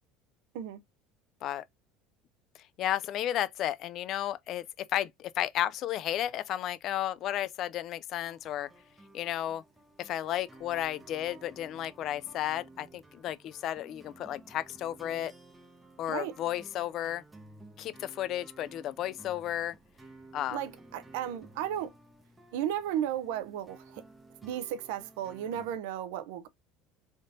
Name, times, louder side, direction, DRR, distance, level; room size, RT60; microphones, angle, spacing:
voice 1, 2.8-8.7 9.1-9.6 10.0-15.3 16.0-17.2 17.8-19.8 20.3-20.6, left 12 dB, 45° left, 0.4 m, -33 dB
sound 1, 8.2-25.8, right 2 dB, 10° right, 1.0 m, -54 dB
voice 2, 20.5-21.9 22.5-24.0 24.4-26.5, right 10 dB, 85° right, 0.6 m, -34 dB
3.9 x 3.6 x 2.7 m
cardioid pair, 150°, 0 cm